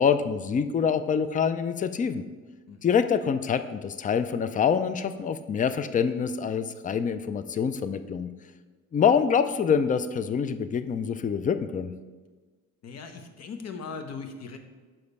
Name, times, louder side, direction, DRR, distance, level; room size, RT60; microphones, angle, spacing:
voice 1, 0.0-2.2 2.8-8.3 8.9-11.9, left 7 dB, 25° left, 11 dB, 0.4 m, -25 dB
voice 2, 12.8-14.6, left 5 dB, 55° left, 6 dB, 0.9 m, -39 dB
5.9 x 5.0 x 5.4 m, 1.4 s
cardioid pair, 95°, 30 cm